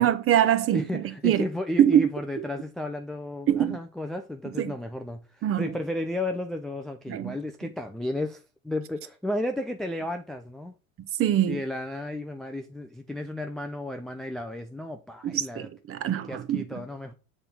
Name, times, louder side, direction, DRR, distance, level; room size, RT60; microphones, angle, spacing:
voice 1, 0.0-1.4 1.8-2.1 3.5-3.8 4.6-4.7 5.4-5.7 7.1-7.4 11.2-11.6 15.2-16.6, right 10 dB, 30° right, 0.8 m, -23 dB
voice 2, 0.7-10.7 11.5-15.7 16.3-17.1, left 1 dB, ahead, 0.3 m, -33 dB
6.7 x 3.7 x 4.3 m
hypercardioid pair, 80°, 42 cm